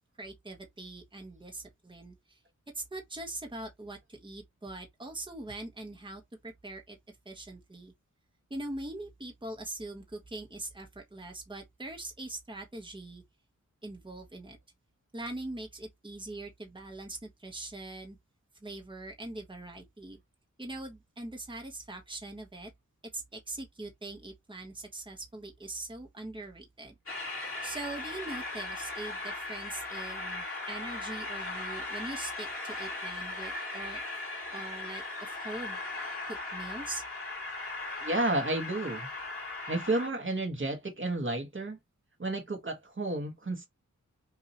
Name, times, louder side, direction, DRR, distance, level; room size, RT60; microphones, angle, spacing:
voice 1, 0.2-2.4 2.7-7.0 7.2-7.9 8.5-13.2 13.8-14.6 15.1-18.2 18.6-20.2 20.6-22.7 23.1-26.9 27.6-34.0 34.5-35.8 36.3-37.0, right 2 dB, 15° right, 1.2 m, -42 dB
Train, 27.1-40.1, left 2 dB, 45° left, 2.5 m, -38 dB
voice 2, 38.0-39.1 39.7-41.8 42.2-43.7, right 2 dB, 40° right, 1.4 m, -31 dB
5.8 x 2.8 x 3.0 m
wide cardioid pair, 105°, 31 cm